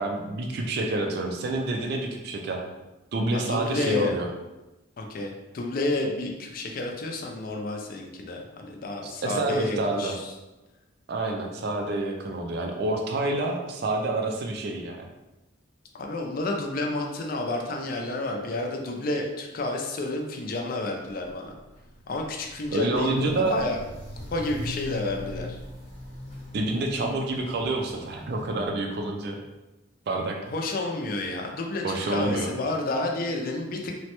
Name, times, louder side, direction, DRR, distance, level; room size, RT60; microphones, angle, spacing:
voice 1, 0.0-2.6 3.1-4.3 9.0-10.2 11.1-15.1 22.7-23.5 26.5-29.4 30.1-30.4 31.8-32.5, right 2 dB, 55° right, 2 dB, 0.3 m, -28 dB
voice 2, 3.3-4.1 5.0-10.3 15.9-21.5 22.1-23.8 24.3-25.6 30.5-34.0, left 2 dB, 45° left, 2 dB, 0.4 m, -30 dB
Walk footsteps, 21.1-28.7, left 1 dB, 30° left, 0.7 m, -41 dB
3.0 x 2.1 x 2.9 m, 1.0 s
head